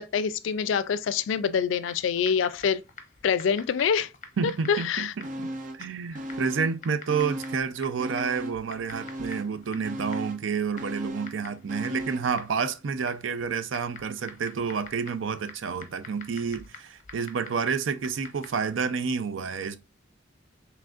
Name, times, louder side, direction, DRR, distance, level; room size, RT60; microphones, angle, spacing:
voice 1, 0.0-2.8 3.2-4.1 4.4-5.1, left 6 dB, 75° left, 0.4 m, -26 dB
Typing, 1.8-18.7, left 4 dB, 40° left, 0.8 m, -49 dB
voice 2, 4.4-5.5 5.7-19.8, right 5 dB, 80° right, 0.5 m, -29 dB
sound 1, 5.2-5.9 6.1-7.7 8.0-12.4 12.7-12.8, right 1 dB, 40° right, 0.7 m, -37 dB
5.0 x 3.2 x 2.4 m
head